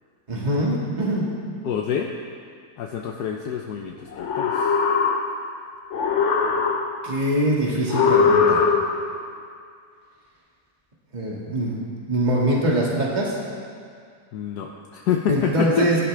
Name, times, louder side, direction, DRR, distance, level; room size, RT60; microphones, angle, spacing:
voice 1, 0.3-1.3 7.0-8.7 11.1-11.8 12.1-13.4 15.3-16.0, right 1 dB, 25° right, -4 dB, 2.1 m, -23 dB
voice 2, 1.6-2.1 2.8-4.7 14.3-15.9, left 8 dB, 75° left, 2 dB, 1.3 m, -27 dB
sound 1, 4.1-5.6 5.9-7.2 7.9-9.2, left 5 dB, 55° left, 1.0 m, -20 dB
17.5 x 11.5 x 3.4 m, 2.2 s
omnidirectional pair, 1.8 m